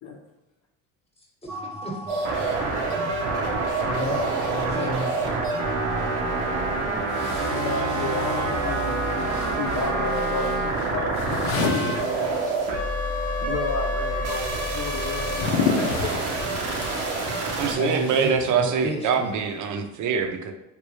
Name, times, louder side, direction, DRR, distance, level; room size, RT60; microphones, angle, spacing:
voice 1, 1.4-2.0 2.3-2.5 3.8-5.6 17.7-19.4, equal, 15° left, -1 dB, 1.0 m, -33 dB
sound 1, 1.5-11.5, equal, 5° right, 0.4 m, -37 dB
sound 2, 2.1-17.7, right 3 dB, 90° right, 0.8 m, -27 dB
sound 3, 6.2-6.3 7.1-12.9 13.1-19.0, left 5 dB, 85° left, 0.6 m, -32 dB
voice 2, 7.5-9.1 9.6-12.3 13.4-15.4 15.8-16.3 17.8-18.1 18.7-18.8, left 3 dB, 50° left, -1 dB, 0.6 m, -32 dB
voice 3, 17.6-20.5, right 6 dB, 50° right, 5 dB, 0.6 m, -24 dB
3.4 x 2.6 x 3.1 m, 0.98 s
supercardioid pair, 85°, 38 cm